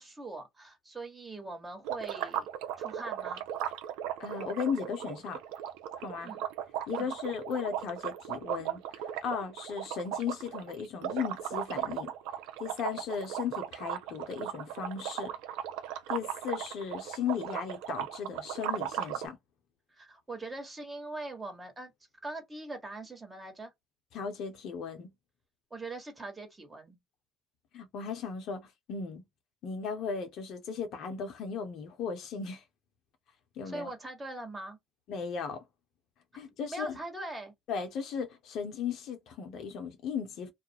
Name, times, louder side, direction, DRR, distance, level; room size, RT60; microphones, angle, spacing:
voice 1, 0.0-2.5 2.8-3.4 6.2-6.4 6.9-7.1 19.9-21.9 22.2-23.7 25.7-27.0 33.6-34.8 36.7-37.5, right 2 dB, 20° right, 1.2 m, -41 dB
sound 1, 1.8-19.3, right 10 dB, 75° right, 0.5 m, -37 dB
voice 2, 4.2-5.4 6.0-6.3 6.9-12.1 12.6-15.3 16.1-19.4 24.1-25.1 27.7-29.2 29.6-32.6 33.6-33.9 35.1-35.6 36.3-37.0 37.7-40.5, left 6 dB, 60° left, 0.8 m, -36 dB
2.4 x 2.1 x 2.7 m
hypercardioid pair, 70°, 0 cm